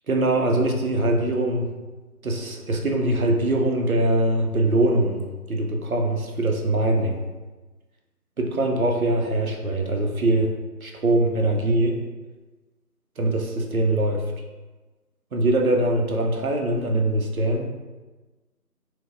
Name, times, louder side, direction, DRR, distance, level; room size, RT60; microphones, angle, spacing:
voice 1, 0.1-1.7 2.2-5.2 5.5-7.2 8.4-10.5 10.8-12.0 13.2-14.2 15.3-17.7, right 1 dB, 60° right, 1 dB, 0.5 m, -22 dB
4.4 x 2.0 x 2.4 m, 1.2 s
figure-of-eight pair, 170°, 48 cm